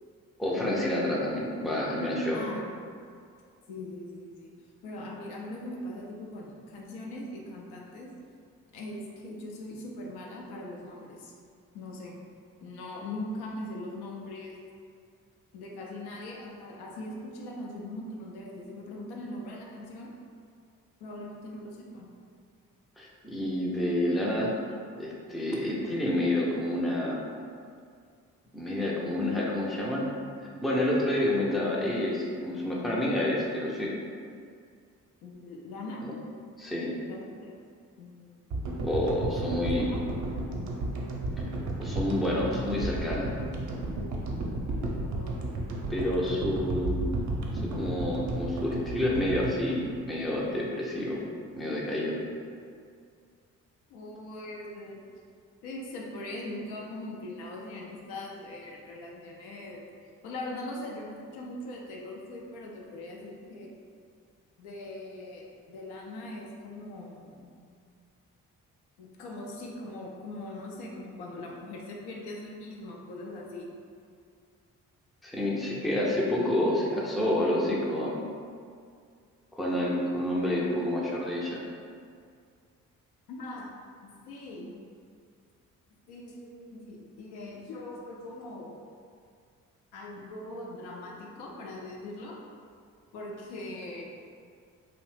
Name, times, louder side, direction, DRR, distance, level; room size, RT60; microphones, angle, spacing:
voice 1, 0.4-2.4 23.0-24.5 25.0-27.3 28.5-30.1 30.6-33.9 36.0-36.1 36.6-36.9 38.8-39.9 41.8-43.3 45.9-47.0 47.6-51.2 51.6-52.2 75.2-78.3 79.6-81.6, left 1 dB, ahead, -4 dB, 0.5 m, -29 dB
voice 2, 2.3-2.7 3.7-4.5 4.8-8.1 8.7-11.3 11.7-12.2 12.6-14.6 15.5-20.1 21.0-22.1 35.2-36.0 37.1-37.6 38.0-38.4 39.7-40.0 45.1-45.6 46.2-46.5 53.9-55.0 55.6-59.9 60.2-63.7 64.6-67.5 69.0-73.7 83.3-83.7 84.0-84.7 86.1-88.7 89.9-92.4 93.1-94.1, left 1 dB, 70° left, -1 dB, 0.6 m, -41 dB
sound 1, 38.5-50.8, right 1 dB, 45° right, 0.6 m, -33 dB
2.6 x 2.1 x 3.2 m, 2.2 s
hypercardioid pair, 40°, 41 cm